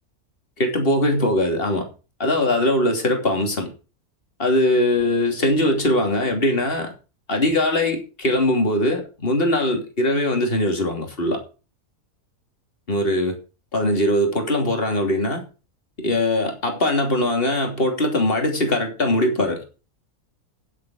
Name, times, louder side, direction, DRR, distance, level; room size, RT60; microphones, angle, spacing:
voice 1, 0.6-1.9 2.2-3.7 4.4-6.9 7.3-11.4 12.9-13.4 13.7-15.4 16.0-19.6, left 1 dB, 40° left, 3.1 m, -21 dB
10.5 x 7.7 x 6.3 m
omnidirectional pair, 1.6 m